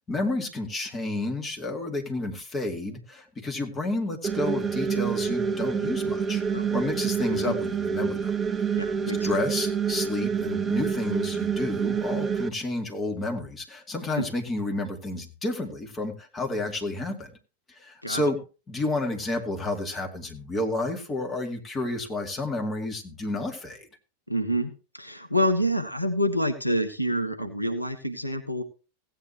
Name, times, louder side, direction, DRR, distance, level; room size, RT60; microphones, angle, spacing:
voice 1, 0.1-6.4 6.7-8.3 9.2-17.3 17.8-18.4 18.7-23.9, left 2 dB, 20° left, 3 dB, 2.3 m, -30 dB
sound 1, 4.2-12.5, right 6 dB, 20° right, 0.6 m, -27 dB
voice 2, 8.7-9.4 14.1-14.2 18.0-18.2 24.3-28.6, equal, 85° left, 8 dB, 1.0 m, -27 dB
16.5 x 9.2 x 3.0 m, 0.32 s
figure-of-eight pair, 90°, 0 cm